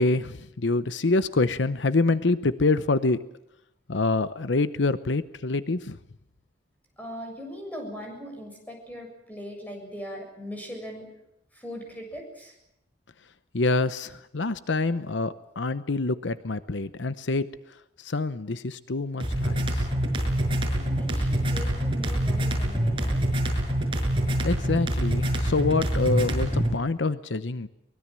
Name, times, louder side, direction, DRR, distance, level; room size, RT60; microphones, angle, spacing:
voice 1, 0.0-3.2 3.9-6.0 13.5-17.5 18.0-19.9 24.4-27.7, left 3 dB, 85° left, 13 dB, 0.9 m, -26 dB
voice 2, 7.0-11.1 11.5-12.5 20.7-23.3, equal, 10° left, 2 dB, 7.2 m, -40 dB
sound 1, 19.2-26.8, right 1 dB, 30° right, 6.0 m, -25 dB
23.5 x 21.0 x 7.6 m, 0.82 s
head